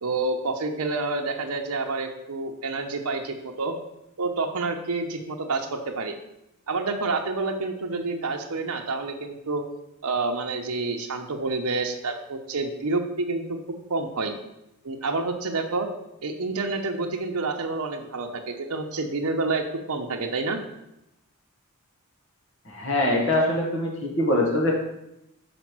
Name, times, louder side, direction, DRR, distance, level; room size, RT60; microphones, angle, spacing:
voice 1, 0.0-3.7 4.2-6.1 6.7-9.6 10.0-13.6 13.9-14.3 14.8-15.9 16.2-20.6, right 3 dB, 85° right, 3 dB, 0.8 m, -28 dB
voice 2, 22.7-24.7, left 1 dB, 55° left, -1 dB, 1.5 m, -23 dB
5.2 x 5.1 x 6.0 m, 0.85 s
head